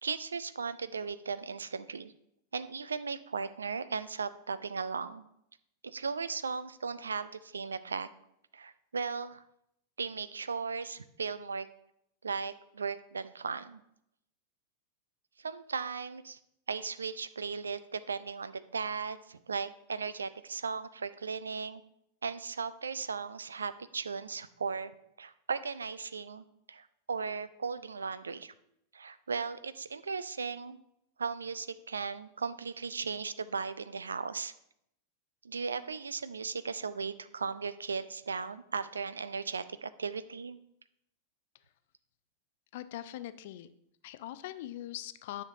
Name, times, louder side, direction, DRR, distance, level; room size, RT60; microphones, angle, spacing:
voice 1, 0.0-2.1 2.5-5.2 5.8-8.1 8.5-9.4 10.0-11.7 12.2-13.8 15.4-16.4 16.7-21.8 22.2-28.5 28.9-30.8 31.2-34.5 35.4-40.6, right 5 dB, 75° right, 14 dB, 0.4 m, -37 dB
voice 2, 42.7-43.7 44.0-45.4, left 13 dB, 50° left, 14 dB, 0.4 m, -41 dB
10.0 x 6.6 x 2.7 m, 0.76 s
figure-of-eight pair, 90°, 0 cm